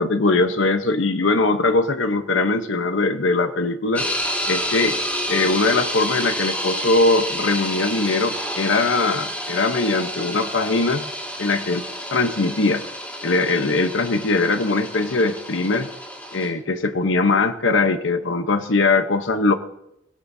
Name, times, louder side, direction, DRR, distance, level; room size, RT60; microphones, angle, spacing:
voice 1, 0.0-4.0 4.5-5.0 5.3-11.1 11.4-11.8 12.1-12.8 13.2-15.9 16.3-19.5, left 3 dB, 75° left, 7 dB, 1.0 m, -21 dB
sound 1, 4.0-16.5, equal, 10° left, 3.2 m, -29 dB
23.0 x 17.5 x 2.8 m, 0.84 s
head